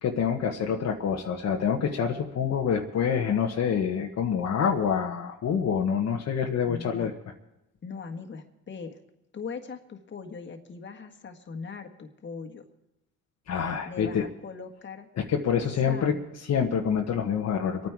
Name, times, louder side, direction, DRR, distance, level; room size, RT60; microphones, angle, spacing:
voice 1, 0.0-7.1 13.5-14.2 15.2-16.2 16.4-17.9, left 7 dB, 60° left, 2 dB, 1.2 m, -26 dB
voice 2, 6.6-7.1 7.8-9.0 9.3-12.6 13.8-15.1 15.5-16.2, left 5 dB, 40° left, 4 dB, 1.6 m, -40 dB
25.5 x 9.5 x 4.7 m, 0.90 s
cardioid pair, 90°, 30 cm